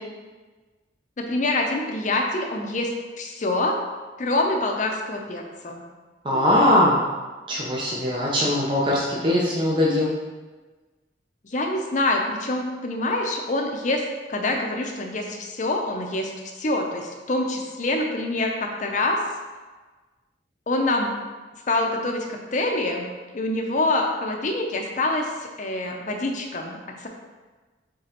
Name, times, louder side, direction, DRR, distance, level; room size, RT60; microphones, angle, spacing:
voice 1, 1.2-3.8 4.2-5.8 6.3-6.4 11.4-19.2 20.7-21.1 21.7-22.3 22.5-23.1 23.3-27.1, left 2 dB, 40° left, 2 dB, 0.6 m, -26 dB
voice 2, 6.2-7.0 7.5-10.1, left 1 dB, 25° right, -5 dB, 0.6 m, -21 dB
5.0 x 3.6 x 2.9 m, 1.3 s
head